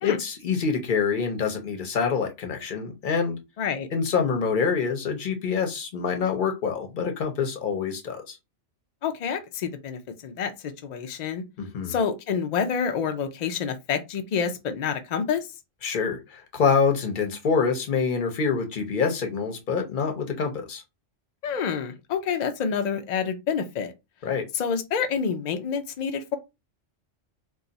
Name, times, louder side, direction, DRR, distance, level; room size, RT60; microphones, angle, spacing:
voice 1, 0.0-3.4 3.9-8.4 11.6-11.9 15.8-20.8 24.2-24.5, left 5 dB, 50° left, 0.7 m, -26 dB
voice 2, 3.6-3.9 9.0-11.4 11.9-15.5 21.4-23.9 24.5-26.4, left 6 dB, 80° left, 0.3 m, -28 dB
2.4 x 2.3 x 3.9 m
omnidirectional pair, 1.3 m